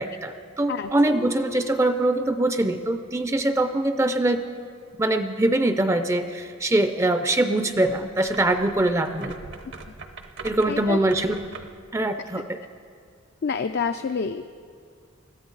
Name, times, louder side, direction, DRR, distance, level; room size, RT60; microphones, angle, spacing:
voice 1, 0.0-4.4 5.0-9.4 10.4-11.4 11.9-12.6, right 1 dB, 15° right, 9 dB, 0.4 m, -23 dB
Harp, 1.1-2.9 3.2-3.6 4.2-4.3, left 1 dB, 85° left, 1.4 m, -43 dB
sound 1, 7.8-11.9, right 4 dB, 55° right, 0.8 m, -42 dB
voice 2, 10.6-11.0 13.4-14.5, left 5 dB, 50° left, 7 dB, 0.4 m, -28 dB
21.0 x 14.0 x 3.9 m, 2.2 s
head